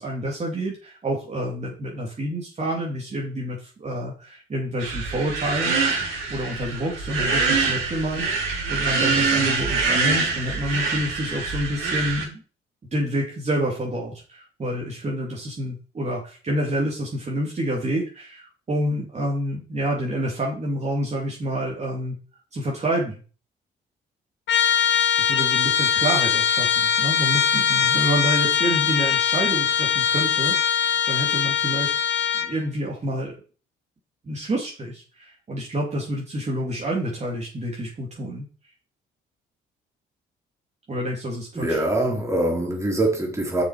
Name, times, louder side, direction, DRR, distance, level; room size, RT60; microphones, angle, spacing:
voice 1, 0.0-6.0 6.3-12.4 12.9-22.2 22.5-23.2 25.2-31.9 32.4-33.3 34.2-38.5 40.9-41.8, equal, 35° right, 2.7 m, -28 dB
sound 1, 4.8-12.2, right 4 dB, 80° right, 4.2 m, -24 dB
Trumpet, 24.5-32.5, left 8 dB, 65° left, 1.1 m, -21 dB
voice 2, 41.6-43.6, right 1 dB, 15° right, 3.7 m, -23 dB
7.0 x 6.3 x 4.9 m
cardioid pair, 90°, 20 cm